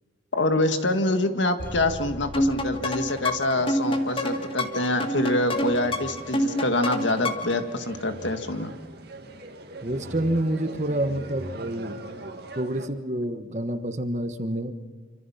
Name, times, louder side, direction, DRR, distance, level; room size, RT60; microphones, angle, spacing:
voice 1, 0.3-8.7, left 2 dB, 70° left, 7 dB, 1.9 m, -25 dB
sound 1, 1.6-3.8 4.1-4.2, equal, 10° left, 3.7 m, -39 dB
sound 2, 2.3-7.6, left 1 dB, 30° left, 1.8 m, -27 dB
sound 3, 3.5-12.9, right 1 dB, 55° right, 2.3 m, -41 dB
voice 2, 9.8-12.2 12.5-14.7, right 1 dB, 35° right, 9 dB, 1.4 m, -28 dB
27.5 x 25.0 x 5.8 m, 1.5 s
head